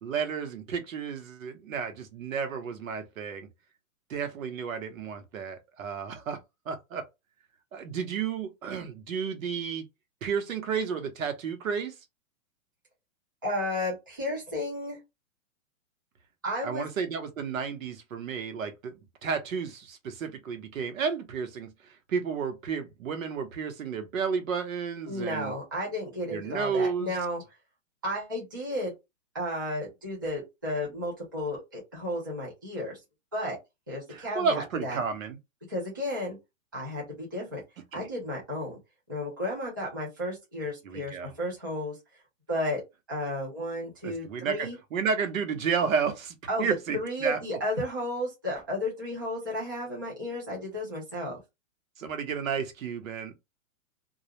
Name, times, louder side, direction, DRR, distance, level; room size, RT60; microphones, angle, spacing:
voice 1, 0.0-3.5 4.1-6.4 6.7-7.0 7.7-9.8 10.2-11.9 16.6-18.9 19.2-21.7 22.1-25.5 26.3-27.2 34.1-35.4 37.9-38.1 40.8-41.3 44.0-47.4 52.0-53.3, right 6 dB, 75° right, 0.8 m, -32 dB
voice 2, 13.4-15.0 16.4-16.9 25.1-27.4 28.0-28.9 29.3-33.0 33.3-33.6 33.9-35.0 35.7-36.4 36.7-37.6 37.9-38.8 39.1-41.9 42.5-42.8 43.1-44.8 46.5-46.7 46.9-51.4, left 1 dB, 15° right, 0.4 m, -33 dB
2.3 x 2.0 x 2.8 m
hypercardioid pair, 170°, 41 cm